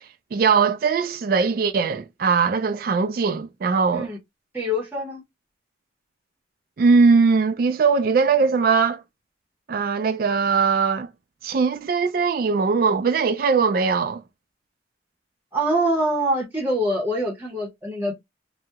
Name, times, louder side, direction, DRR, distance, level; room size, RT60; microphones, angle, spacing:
voice 1, 0.3-4.1 6.8-9.0 9.7-11.1 11.4-14.2, right 5 dB, 50° right, 0.3 m, -20 dB
voice 2, 4.5-5.2 15.5-18.1, right 1 dB, 10° right, 0.7 m, -24 dB
2.8 x 2.0 x 3.4 m
head